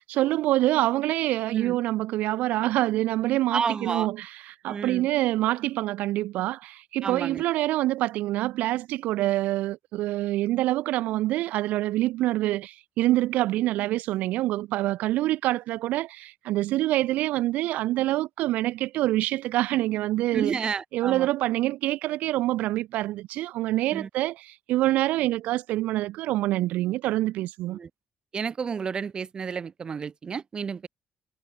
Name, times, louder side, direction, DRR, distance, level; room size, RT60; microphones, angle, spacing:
voice 1, 0.0-20.7 20.9-27.8, right 16 dB, 85° right, 2.2 m, -26 dB
voice 2, 3.5-4.1 4.7-5.1 7.0-7.4 20.3-21.3 23.9-24.1 27.7-27.9 28.3-30.9, right 6 dB, 35° right, 3.7 m, -31 dB
cardioid pair, 130°, 3 cm